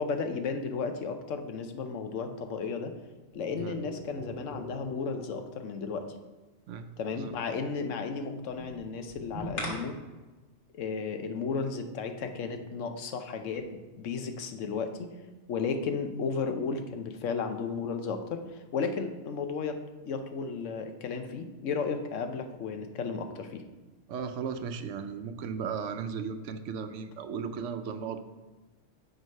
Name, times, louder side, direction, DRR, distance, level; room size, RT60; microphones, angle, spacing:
voice 1, 0.0-2.9 3.3-6.0 7.0-9.9 10.7-15.1 15.5-19.8 20.0-23.6, left 5 dB, 85° left, 7 dB, 1.1 m, -34 dB
sound 1, 3.3-5.7 8.5-9.7, left 1 dB, 70° left, 1.8 m, -41 dB
voice 2, 24.1-28.2, right 6 dB, 80° right, 9 dB, 0.9 m, -36 dB
6.4 x 4.7 x 5.3 m, 1.2 s
omnidirectional pair, 1.2 m